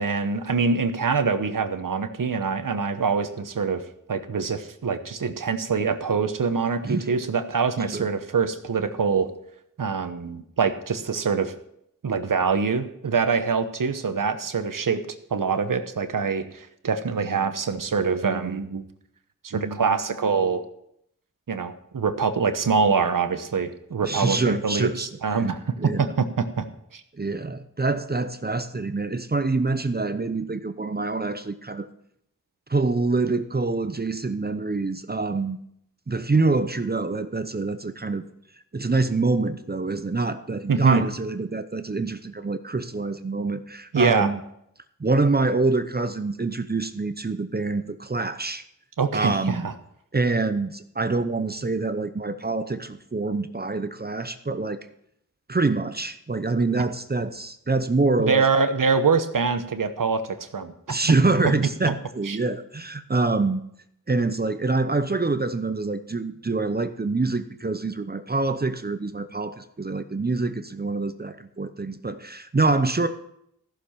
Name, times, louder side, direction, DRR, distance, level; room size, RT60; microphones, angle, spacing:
voice 1, 0.0-3.8 4.1-9.3 9.8-11.5 12.0-15.0 15.3-18.8 19.4-20.6 21.5-26.7 26.9-27.0 40.7-41.0 43.9-44.3 49.0-49.7 58.2-60.7 62.2-62.4, right 5 dB, 70° right, 9 dB, 1.1 m, -24 dB
voice 2, 24.0-25.1 25.8-26.1 27.1-31.9 32.7-35.6 36.1-38.2 38.7-44.4 45.0-48.6 49.1-49.7 50.1-54.8 55.5-58.5 60.9-63.6 64.1-73.1, right 3 dB, 30° right, 10 dB, 0.8 m, -25 dB
14.5 x 6.8 x 5.7 m, 0.75 s
wide cardioid pair, 55°, 34 cm